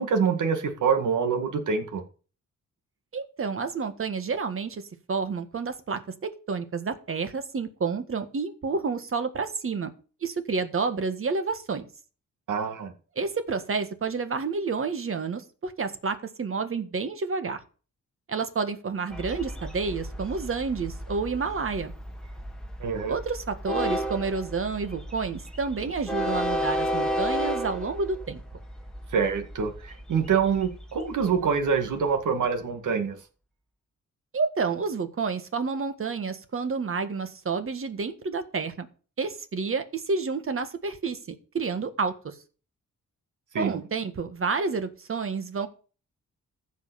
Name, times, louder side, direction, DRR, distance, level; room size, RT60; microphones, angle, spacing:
voice 1, 0.0-2.0 12.5-12.9 22.8-23.2 29.1-33.2 43.5-43.8, right 6 dB, 75° right, 2.1 m, -25 dB
voice 2, 3.1-4.8 5.1-9.9 10.2-11.9 13.1-17.6 18.3-21.9 23.1-28.4 34.3-38.9 39.2-42.4 43.6-45.7, right 4 dB, 45° right, 1.6 m, -29 dB
Train, 19.1-32.1, equal, ahead, 1.6 m, -33 dB
14.5 x 5.5 x 6.9 m
wide cardioid pair, 115°, 31 cm